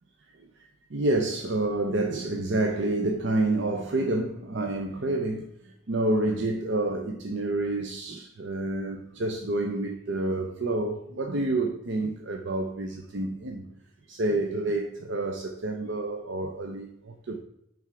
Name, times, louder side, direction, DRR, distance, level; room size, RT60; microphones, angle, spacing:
voice 1, 0.3-13.7 14.1-17.4, right 2 dB, 65° right, 0.6 m, -29 dB
9.1 x 3.5 x 4.8 m
head